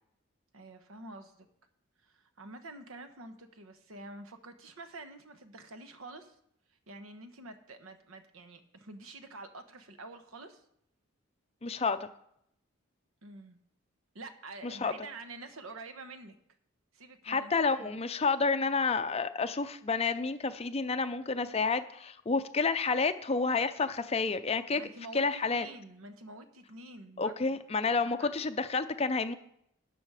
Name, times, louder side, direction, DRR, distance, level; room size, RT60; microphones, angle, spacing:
voice 1, 0.5-1.5 2.0-6.4 6.9-10.6 13.2-13.6 14.1-16.3 16.9-17.9 24.7-27.6 28.0-28.3, right 2 dB, 75° right, 8 dB, 1.1 m, -48 dB
voice 2, 11.6-12.1 14.6-14.9 17.2-24.8 25.1-25.7 27.2-29.3, left 4 dB, 30° left, 10 dB, 0.5 m, -30 dB
12.5 x 7.6 x 4.8 m, 0.74 s
head